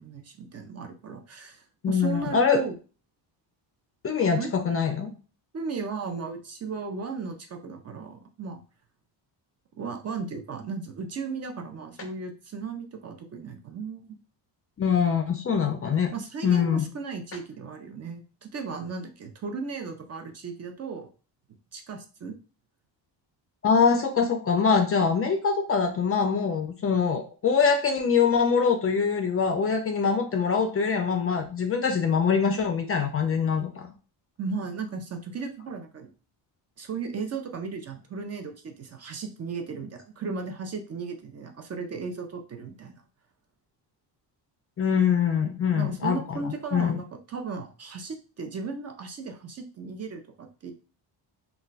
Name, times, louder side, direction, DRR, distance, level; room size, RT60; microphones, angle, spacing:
voice 1, 0.0-2.7 4.3-4.5 5.5-8.6 9.8-14.2 16.1-21.1 21.7-22.4 34.4-36.1 36.8-42.9 45.7-50.7, right 4 dB, 35° right, 5 dB, 0.4 m, -36 dB
voice 2, 1.8-2.6 4.0-5.1 14.8-16.1 16.4-16.9 23.6-33.9 44.8-47.0, left 6 dB, 35° left, 6 dB, 0.4 m, -24 dB
2.3 x 2.2 x 3.9 m, 0.36 s
cardioid pair, 110°, 44 cm